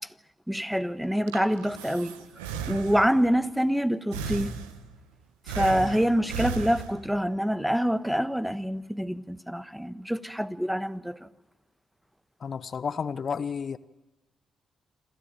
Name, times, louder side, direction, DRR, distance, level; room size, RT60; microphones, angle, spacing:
voice 1, 0.5-2.1 2.7-4.5 5.5-11.2, equal, 5° right, 1.3 m, -26 dB
Breathing, 1.0-3.3 4.1-5.0 5.5-7.3, right 6 dB, 85° right, 1.4 m, -35 dB
voice 2, 5.7-6.0 12.4-13.8, left 6 dB, 55° left, 0.8 m, -32 dB
27.5 x 13.0 x 9.0 m
hypercardioid pair, 40°, 0 cm